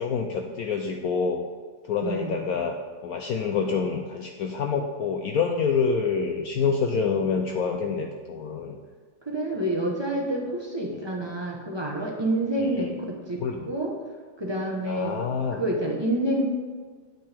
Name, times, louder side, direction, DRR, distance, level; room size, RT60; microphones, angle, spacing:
voice 1, 0.0-1.4 1.9-2.7 3.0-8.8 10.9-11.0 12.6-12.9 13.4-13.6 14.9-15.6, left 5 dB, 70° left, 3 dB, 0.9 m, -27 dB
voice 2, 2.0-2.4 9.2-13.9 14.4-15.2 15.5-16.5, right 1 dB, 20° right, -1 dB, 0.7 m, -28 dB
8.6 x 8.6 x 3.5 m, 1.5 s
omnidirectional pair, 2.0 m